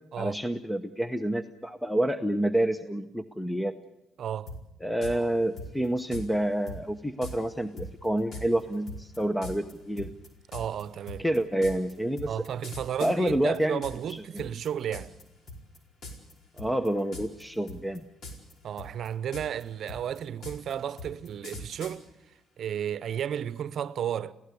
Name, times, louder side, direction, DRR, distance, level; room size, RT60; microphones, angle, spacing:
voice 1, 0.2-3.7 4.8-10.1 11.2-12.3 13.0-13.8 14.1-14.4 16.6-18.0, right 1 dB, 5° left, 0.9 m, -28 dB
voice 2, 4.2-4.5 10.5-11.2 12.3-15.1 18.6-22.0 22.6-24.3, right 9 dB, 65° right, 0.7 m, -33 dB
sound 1, 4.5-4.6 5.0-5.2 5.6-6.3 6.7-6.8 7.2-7.4 7.8-14.1 14.4-15.2 15.5-16.3 16.6-17.4 17.7-18.5 18.8-22.0, left 2 dB, 60° left, 4.8 m, -40 dB
27.0 x 16.5 x 8.4 m
cardioid pair, 90°, 0 cm